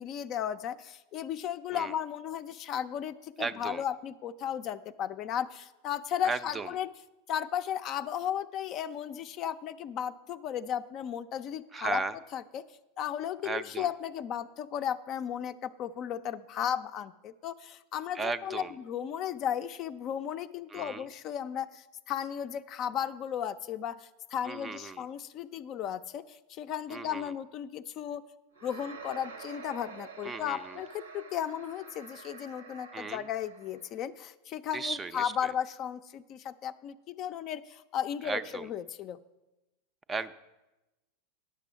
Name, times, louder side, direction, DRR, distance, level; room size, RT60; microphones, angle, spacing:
voice 1, 0.0-6.9 7.3-12.0 12.3-12.6 13.0-28.2 28.6-39.2, left 9 dB, 40° left, 11 dB, 0.4 m, -35 dB
voice 2, 3.4-3.8 6.2-6.7 11.7-12.1 13.4-13.9 18.1-18.7 20.7-21.0 24.4-25.0 26.9-27.2 30.2-30.8 32.9-33.2 34.7-35.3 38.2-38.7 40.1-40.3, right 4 dB, 20° right, 12 dB, 0.4 m, -35 dB
sound 1, 28.5-33.9, right 5 dB, 85° right, 0.9 m, -48 dB
10.0 x 6.7 x 6.2 m, 1.0 s
figure-of-eight pair, 85°, 0 cm